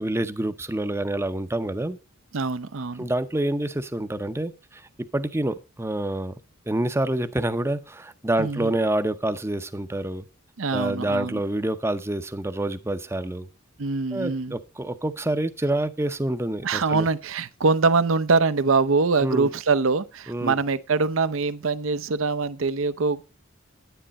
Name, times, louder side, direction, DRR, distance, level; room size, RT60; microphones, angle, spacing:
voice 1, 0.0-2.0 3.0-6.4 6.7-10.3 10.7-13.5 14.1-17.1 19.2-19.5 20.3-20.6, right 1 dB, 10° right, 0.6 m, -27 dB
voice 2, 2.3-3.1 8.4-8.7 10.6-11.4 13.8-14.6 16.6-23.2, right 4 dB, 70° right, 0.7 m, -23 dB
10.0 x 10.0 x 4.1 m
head